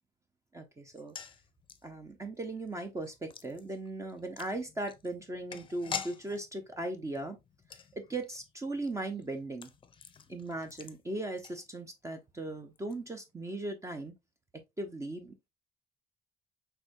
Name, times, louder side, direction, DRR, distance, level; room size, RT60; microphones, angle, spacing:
voice 1, 0.5-1.1 1.8-7.4 7.9-9.7 10.3-14.1 14.8-15.3, right 2 dB, 15° right, 0.8 m, -38 dB
sound 1, 0.9-12.1 12.4-12.5 12.8-12.9, left 6 dB, 30° left, 0.6 m, -47 dB
6.0 x 3.3 x 2.6 m
cardioid pair, 110°, 17 cm